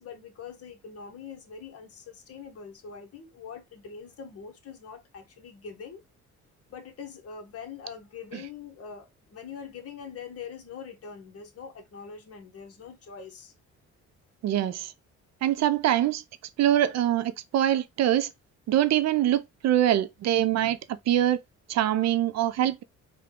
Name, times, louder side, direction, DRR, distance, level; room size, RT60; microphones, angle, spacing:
voice 1, 0.0-6.0 6.7-13.5, left 6 dB, 50° left, 0.9 m, -43 dB
voice 2, 14.4-14.9 15.4-16.2 16.6-18.3 18.7-20.8 21.1-21.4 21.7-22.8, right 12 dB, 60° right, 0.4 m, -24 dB
3.5 x 2.2 x 3.6 m
cardioid pair, 90°, 30 cm